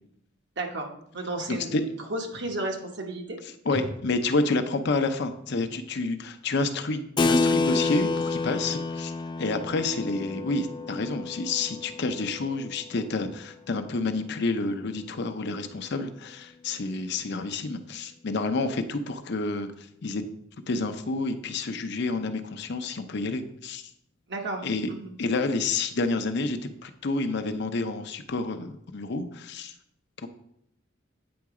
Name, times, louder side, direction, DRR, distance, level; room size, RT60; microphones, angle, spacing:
voice 1, 0.6-0.9 1.1-3.4 3.7-3.8 24.3-25.1, right 2 dB, 60° right, 2 dB, 1.2 m, -33 dB
voice 2, 1.5-1.9 3.4-9.1 9.4-20.2 20.7-23.9 24.6-24.9 25.2-29.7 30.2-30.3, left 3 dB, 60° left, 8 dB, 0.6 m, -29 dB
Keyboard (musical), 7.2-13.2, left 3 dB, 25° left, 0.3 m, -29 dB
8.6 x 4.0 x 4.8 m, 0.74 s
head